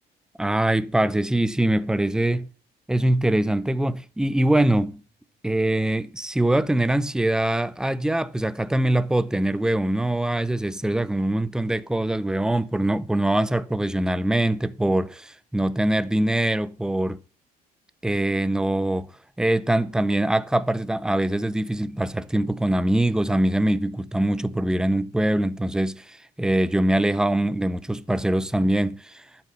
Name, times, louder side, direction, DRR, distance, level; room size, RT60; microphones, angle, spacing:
voice 1, 0.4-2.5 2.9-5.0 5.4-17.2 18.0-19.1 19.4-29.2, right 1 dB, 5° right, 0.7 m, -23 dB
12.0 x 7.5 x 6.6 m
cardioid pair, 110°, 17 cm